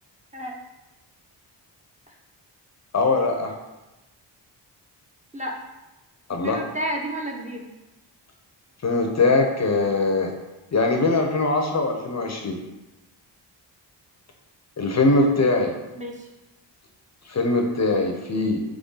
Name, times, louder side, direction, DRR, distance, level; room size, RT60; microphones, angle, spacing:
voice 1, 2.9-3.5 6.3-6.6 8.8-10.3 10.7-12.6 14.8-15.7 17.3-18.6, left 3 dB, 35° left, 2 dB, 0.6 m, -21 dB
voice 2, 6.4-7.7 16.0-16.3, right 1 dB, 15° right, 0 dB, 0.7 m, -31 dB
3.7 x 3.2 x 3.9 m, 1.0 s
cardioid pair, 75°, 45 cm